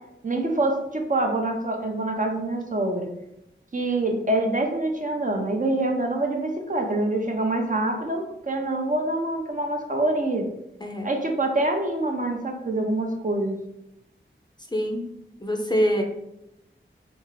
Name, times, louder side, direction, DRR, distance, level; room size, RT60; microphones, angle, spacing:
voice 1, 0.2-3.1 3.7-10.5 11.0-13.6, right 2 dB, 40° right, 2 dB, 0.6 m, -25 dB
voice 2, 14.7-15.1 15.4-16.0, equal, 20° left, 3 dB, 0.5 m, -24 dB
3.5 x 2.4 x 3.2 m, 0.86 s
wide cardioid pair, 45°, 21 cm